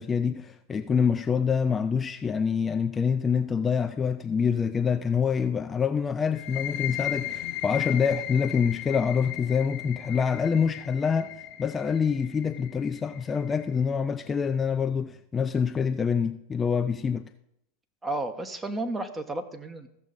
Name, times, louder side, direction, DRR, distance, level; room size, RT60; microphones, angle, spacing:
voice 1, 0.0-11.3 11.6-17.2, left 6 dB, 20° left, 0.5 m, -26 dB
sound 1, 6.3-13.8, left 13 dB, 50° left, 0.9 m, -36 dB
voice 2, 18.0-19.9, right 2 dB, 15° right, 1.1 m, -32 dB
15.0 x 6.4 x 4.1 m
hypercardioid pair, 95°, 0 cm